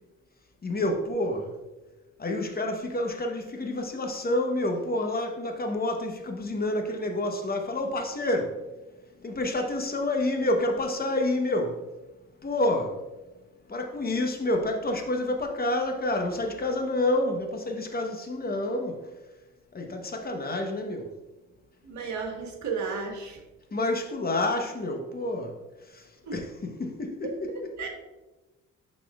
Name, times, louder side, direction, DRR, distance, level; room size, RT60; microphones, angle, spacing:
voice 1, 0.6-1.5 2.2-8.6 9.2-11.8 12.4-13.0 13.7-19.0 19.7-21.1 23.7-25.5 25.9-26.0 26.3-27.5, left 1 dB, 30° left, 3 dB, 1.0 m, -28 dB
voice 2, 21.8-23.4 26.3-26.4 27.2-27.9, right 5 dB, 70° right, 2 dB, 1.5 m, -34 dB
12.0 x 4.2 x 2.3 m, 1.1 s
cardioid pair, 90°, 30 cm